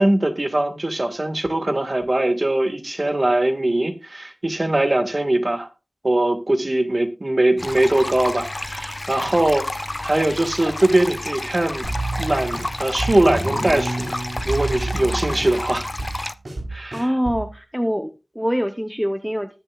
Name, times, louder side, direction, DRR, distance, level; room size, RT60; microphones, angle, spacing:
voice 1, 0.0-5.7 6.0-9.7 10.0-11.9 12.2-14.0 14.5-15.9 16.7-17.1, right 1 dB, 50° right, 1.8 m, -21 dB
sound 1, 7.6-16.3, left 1 dB, 40° left, 0.5 m, -30 dB
sound 2, 11.8-17.5, right 2 dB, 80° right, 4.9 m, -29 dB
voice 2, 16.9-19.5, equal, 5° right, 0.9 m, -24 dB
19.5 x 7.1 x 2.5 m
wide cardioid pair, 40°, 0 cm